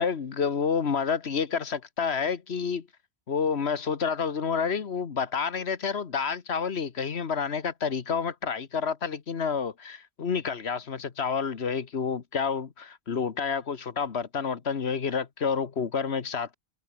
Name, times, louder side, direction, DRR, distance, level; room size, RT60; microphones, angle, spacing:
voice 1, 0.0-2.9 3.3-16.5, left 6 dB, 75° left, 1.6 m, -29 dB
omnidirectional pair, 1.1 m